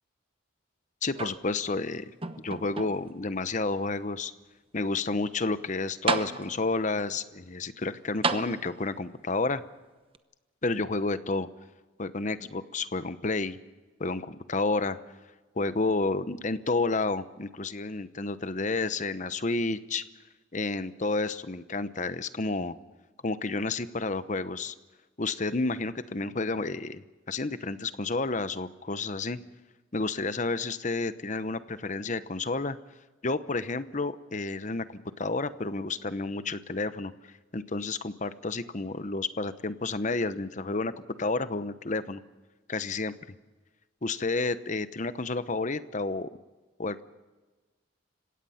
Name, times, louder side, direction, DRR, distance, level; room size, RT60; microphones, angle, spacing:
voice 1, 1.0-2.1 2.4-4.3 4.7-9.6 10.6-11.5 12.0-13.6 14.0-15.0 15.6-20.0 20.5-22.7 23.2-24.7 25.2-29.4 29.9-32.8 33.2-42.2 42.7-43.1 44.0-46.3 46.8-47.0, left 3 dB, 35° left, 13 dB, 0.9 m, -30 dB
sound 1, 1.1-1.8 2.2-3.2 3.9-4.0 5.6-5.7 6.1-6.8 8.2-9.1 10.1-10.2, right 4 dB, 25° right, 0.9 m, -32 dB
30.0 x 17.0 x 5.7 m, 1.2 s
head